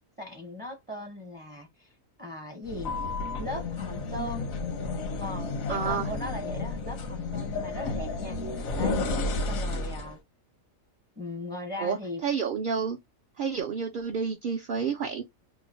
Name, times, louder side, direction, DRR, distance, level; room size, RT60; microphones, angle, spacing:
voice 1, 0.2-1.9 2.2-2.9 3.4-4.5 5.2-8.4 8.8-10.2 11.2-12.2, left 1 dB, 15° right, 0.4 m, -38 dB
sound 1, 2.7-10.2, left 3 dB, 85° left, 1.2 m, -32 dB
voice 2, 5.7-6.1 11.8-13.0 13.4-15.2, right 6 dB, 65° right, 0.5 m, -30 dB
3.0 x 2.0 x 3.8 m
omnidirectional pair, 1.4 m